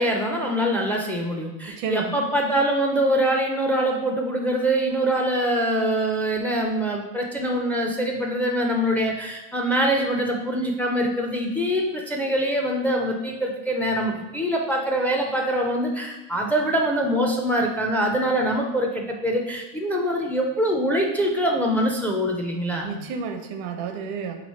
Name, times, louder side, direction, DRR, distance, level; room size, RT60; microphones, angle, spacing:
voice 1, 0.0-22.9, right 1 dB, 5° left, 0 dB, 0.4 m, -24 dB
voice 2, 1.7-2.2 22.8-24.3, right 6 dB, 75° right, 5 dB, 0.7 m, -31 dB
3.1 x 2.9 x 4.2 m, 1.0 s
supercardioid pair, 115°, 35 cm